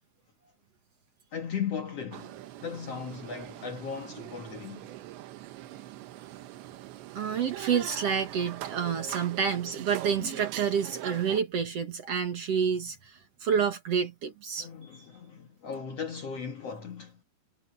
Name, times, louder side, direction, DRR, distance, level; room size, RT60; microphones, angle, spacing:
voice 1, 1.3-4.9 9.6-9.9 10.2-10.3 14.6-17.2, left 6 dB, 65° left, 1.6 m, -37 dB
sound 1, 2.1-11.4, right 14 dB, 85° right, 3.5 m, -42 dB
voice 2, 7.1-14.7, right 7 dB, 60° right, 1.6 m, -29 dB
omnidirectional pair, 5.0 m